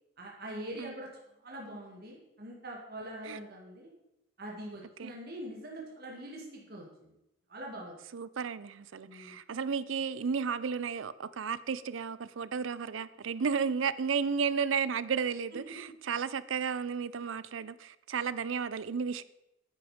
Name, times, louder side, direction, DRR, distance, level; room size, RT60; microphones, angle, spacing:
voice 1, 0.2-1.1 1.4-3.9 4.4-7.1 7.5-7.9 9.0-9.4, right 1 dB, 55° right, 2.3 m, -43 dB
voice 2, 8.1-19.2, right 6 dB, 85° right, 0.5 m, -33 dB
9.8 x 9.2 x 5.1 m
head